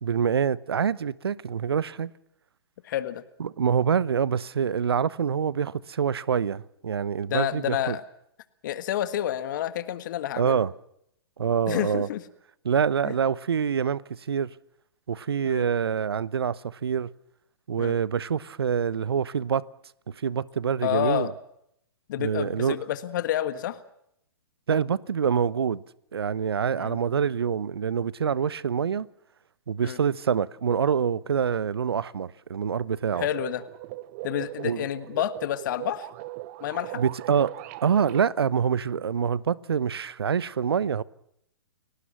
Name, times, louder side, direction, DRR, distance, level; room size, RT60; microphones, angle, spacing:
voice 1, 0.0-2.1 3.4-8.0 10.4-10.7 11.4-12.1 12.6-14.5 15.1-17.1 17.7-19.6 20.1-21.3 22.2-22.8 24.7-25.8 26.1-29.1 29.7-33.3 34.6-34.9 36.9-37.5 37.8-41.0, right 7 dB, 70° right, 0.9 m, -26 dB
voice 2, 2.8-3.2 7.3-8.0 8.6-10.6 11.7-12.2 13.0-13.1 15.4-15.7 17.8-17.9 20.8-21.3 22.1-23.8 26.8-27.0 29.8-30.0 33.1-33.6 34.2-36.1 36.6-37.0, left 12 dB, 50° left, 1.6 m, -29 dB
sound 1, 33.1-38.2, right 18 dB, 35° right, 0.9 m, -39 dB
30.0 x 18.5 x 6.0 m
figure-of-eight pair, 120°, 13 cm